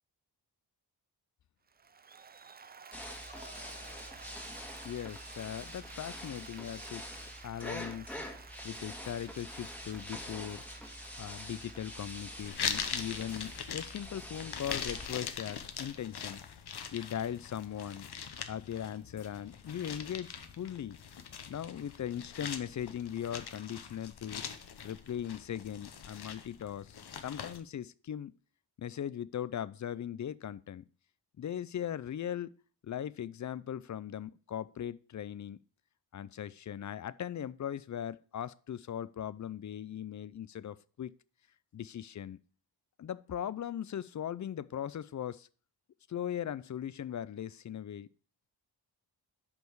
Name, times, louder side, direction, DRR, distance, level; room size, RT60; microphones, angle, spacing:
Applause, 1.7-14.9, right 5 dB, 25° right, 0.3 m, -54 dB
sound 1, 2.9-15.1, equal, 5° left, 1.6 m, -45 dB
voice 1, 3.3-4.2 4.8-8.2 8.6-10.6 11.2-16.4 16.9-18.1 18.5-21.0 21.5-24.5 24.8-28.3 28.8-30.8 31.4-32.5 32.8-35.6 36.1-41.1 41.7-42.4 43.0-45.5 46.1-48.1, left 10 dB, 45° left, 0.4 m, -39 dB
sound 2, 12.4-27.6, left 7 dB, 65° left, 0.9 m, -42 dB
8.1 x 5.3 x 4.6 m
wide cardioid pair, 90°, 43 cm